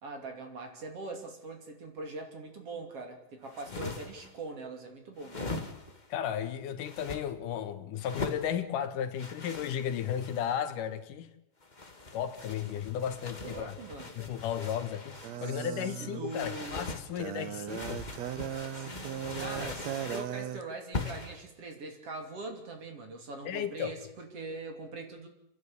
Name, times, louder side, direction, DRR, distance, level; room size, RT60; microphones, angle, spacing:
voice 1, 0.0-5.6 13.4-14.1 15.4-16.8 18.7-25.3, right 3 dB, 50° right, 3.7 m, -42 dB
sound 1, 3.4-4.3 5.2-6.1 6.8-7.2 8.0-8.5 9.2-10.6 11.6-15.4 16.3-17.1 17.7-20.3 20.9-21.4, left 3 dB, 30° left, 0.8 m, -41 dB
voice 2, 6.1-11.3 12.1-13.8 14.2-18.1 23.5-23.9, left 9 dB, 80° left, 2.7 m, -34 dB
sound 2, 15.2-20.6, right 11 dB, 70° right, 1.9 m, -38 dB
29.5 x 11.0 x 8.5 m
omnidirectional pair, 3.7 m